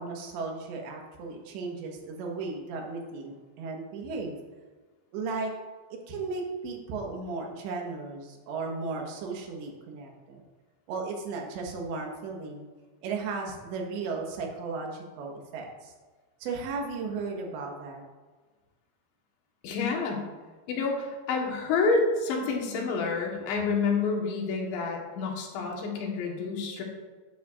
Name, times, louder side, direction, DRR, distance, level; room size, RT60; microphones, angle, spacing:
voice 1, 0.0-4.4 5.1-5.5 6.1-10.4 10.9-12.7 13.0-15.9 16.4-18.0, right 4 dB, 80° right, 1 dB, 3.5 m, -35 dB
voice 2, 19.6-20.3 20.7-26.8, left 4 dB, 80° left, 0 dB, 3.7 m, -28 dB
12.0 x 10.5 x 2.5 m, 1.3 s
omnidirectional pair, 5.1 m